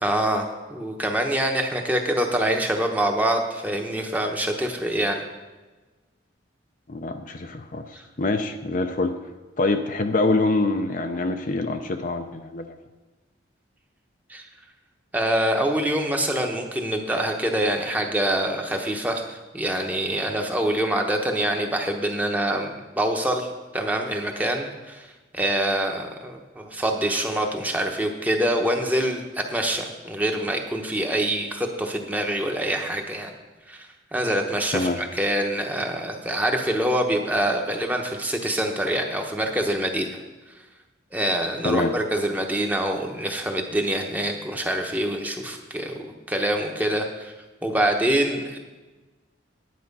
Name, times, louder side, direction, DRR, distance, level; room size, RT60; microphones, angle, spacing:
voice 1, 0.0-0.4 0.7-5.2 7.9-8.0 14.3-14.5 15.1-33.3 33.7-40.2 41.1-47.3 47.6-48.6, right 1 dB, 10° right, 3 dB, 1.0 m, -25 dB
voice 2, 6.9-7.8 8.2-9.1 9.6-12.7 34.7-35.0 41.6-41.9, left 2 dB, 40° left, 6 dB, 0.5 m, -25 dB
10.5 x 9.2 x 5.4 m, 1.2 s
head